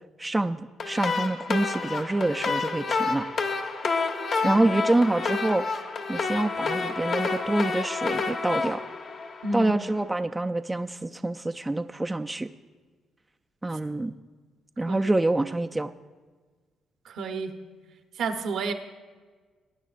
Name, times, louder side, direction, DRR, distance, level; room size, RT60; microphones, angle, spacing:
voice 1, 0.2-3.3 4.4-5.6 6.1-8.8 9.5-12.5 13.6-14.1 14.8-15.9, right 2 dB, 15° right, 7 dB, 0.4 m, -26 dB
sound 1, 0.8-9.9, left 4 dB, 55° left, 1.1 m, -29 dB
voice 2, 9.4-9.8 13.7-13.8 14.9-15.1 17.0-17.5 18.2-18.7, right 3 dB, 75° right, 6 dB, 0.9 m, -31 dB
20.5 x 9.2 x 2.5 m, 1.4 s
cardioid pair, 90°, 0 cm